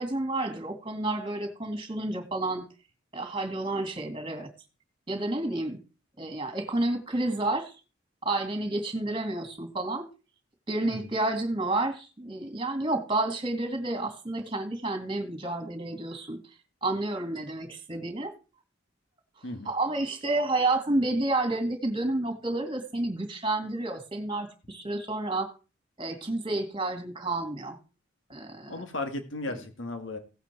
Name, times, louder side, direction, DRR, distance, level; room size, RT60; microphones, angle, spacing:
voice 1, 0.0-2.6 3.1-4.5 5.1-5.8 6.2-7.8 8.2-10.1 10.7-16.4 16.8-18.3 19.7-25.5 26.0-27.8 28.3-28.8 29.5-29.6, right 2 dB, 25° right, 6 dB, 2.5 m, -30 dB
voice 2, 28.7-30.2, left 2 dB, 80° left, 7 dB, 2.1 m, -35 dB
16.5 x 8.2 x 4.6 m, 0.34 s
head